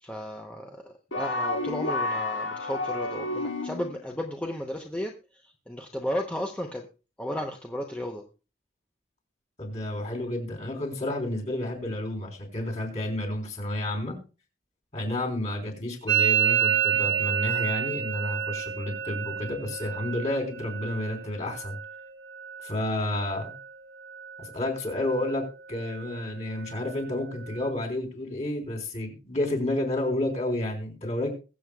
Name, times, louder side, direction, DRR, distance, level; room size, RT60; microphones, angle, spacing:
voice 1, 0.0-5.1 5.4-6.9 7.2-8.2, equal, 5° left, 1 dB, 0.8 m, -34 dB
sound 1, 1.1-4.0, left 2 dB, 80° left, 1.9 m, -30 dB
voice 2, 9.6-14.2 14.9-21.8 22.6-23.5 24.4-31.3, left 1 dB, 35° left, 1 dB, 3.7 m, -30 dB
Musical instrument, 16.1-23.7 24.0-24.6 24.8-25.4 25.7-27.7, right 10 dB, 55° right, 1.4 m, -30 dB
22.0 x 7.9 x 2.3 m, 0.32 s
head